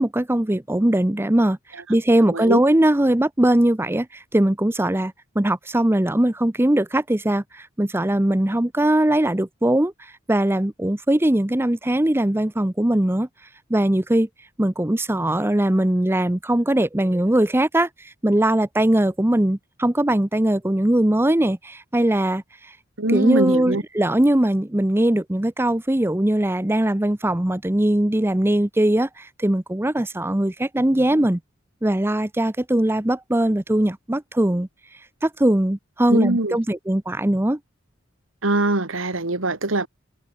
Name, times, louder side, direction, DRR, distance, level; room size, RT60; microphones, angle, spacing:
voice 1, 0.0-1.6 1.9-13.3 13.7-14.3 14.6-22.8 23.1-31.4 31.8-37.6, right 1 dB, 10° right, 0.7 m, -20 dB
voice 2, 2.3-2.6 23.0-23.8 36.1-36.6 38.4-39.9, right 2 dB, 70° right, 2.3 m, -22 dB
head